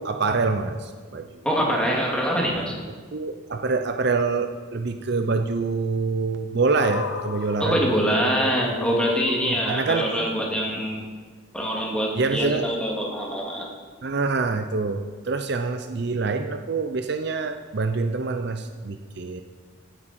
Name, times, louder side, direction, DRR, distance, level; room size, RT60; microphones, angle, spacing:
voice 1, 0.0-1.4 3.1-7.9 9.4-10.1 12.2-12.7 14.0-19.4, right 4 dB, 50° right, 6 dB, 0.6 m, -26 dB
voice 2, 1.4-2.7 7.6-11.0 11.5-13.7, equal, 5° left, -2 dB, 2.2 m, -24 dB
sound 1, 6.7-11.0, left 5 dB, 80° left, 0.7 m, -35 dB
16.0 x 9.1 x 4.3 m, 1.5 s
head